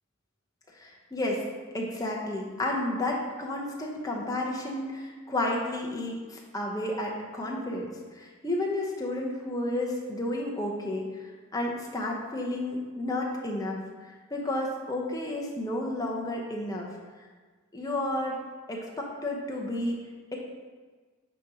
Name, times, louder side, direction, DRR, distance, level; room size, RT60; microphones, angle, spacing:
voice 1, 0.7-1.4 1.7-16.9 17.7-18.4 18.7-20.0, left 1 dB, 15° left, -1 dB, 0.8 m, -32 dB
9.0 x 3.0 x 4.8 m, 1.4 s
head